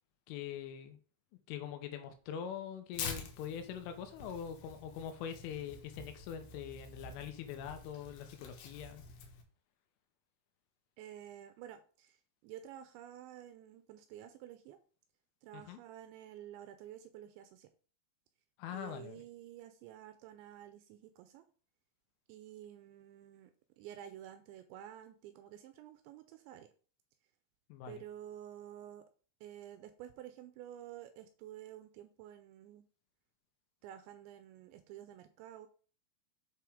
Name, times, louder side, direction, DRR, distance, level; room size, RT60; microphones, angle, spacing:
voice 1, 0.3-1.0 1.5-9.0 15.5-15.8 18.6-19.2 27.7-28.0, left 9 dB, 90° left, 7 dB, 3.5 m, -43 dB
Tearing, 2.9-9.4, left 5 dB, 70° left, 2.8 m, -47 dB
voice 2, 11.0-14.8 15.4-17.7 18.7-21.4 22.3-23.5 23.8-26.7 27.9-29.0 29.4-32.8 33.8-35.7, right 11 dB, 85° right, 9 dB, 2.7 m, -51 dB
7.6 x 5.8 x 3.7 m, 0.40 s
omnidirectional pair, 5.7 m